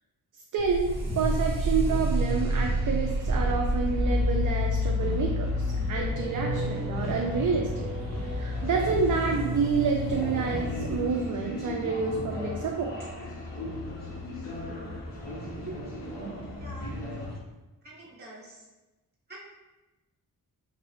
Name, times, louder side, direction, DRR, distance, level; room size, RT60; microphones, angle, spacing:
voice 1, 0.5-7.9 8.3-12.9, right 5 dB, 60° right, 1 dB, 0.5 m, -28 dB
sound 1, 0.6-11.2, equal, 85° right, 0.8 m, -29 dB
sound 2, 0.8-17.4, left 2 dB, 45° left, 0.7 m, -38 dB
sound 3, 5.2-17.3, equal, 25° left, 1.4 m, -40 dB
voice 2, 16.5-17.0 17.8-18.6 19.3-19.4, right 1 dB, 25° right, -6 dB, 1.2 m, -46 dB
3.9 x 2.4 x 3.2 m, 1.1 s
cardioid pair, 75°, 37 cm